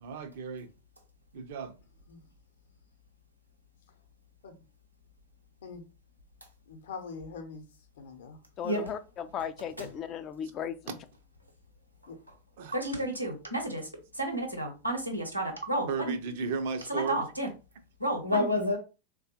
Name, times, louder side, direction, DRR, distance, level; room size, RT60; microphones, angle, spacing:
voice 1, 0.0-0.7 1.3-1.7 12.6-12.8 15.9-17.2, right 5 dB, 55° right, 0.5 m, -34 dB
voice 2, 6.7-7.7 8.0-8.4 12.1-12.2, left 4 dB, 60° left, 0.6 m, -43 dB
voice 3, 8.6-10.8, left 8 dB, 30° left, 0.3 m, -36 dB
voice 4, 12.7-16.2 16.9-17.5 18.0-18.8, equal, 90° right, 0.8 m, -31 dB
3.5 x 2.2 x 2.8 m
figure-of-eight pair, 90°, 0 cm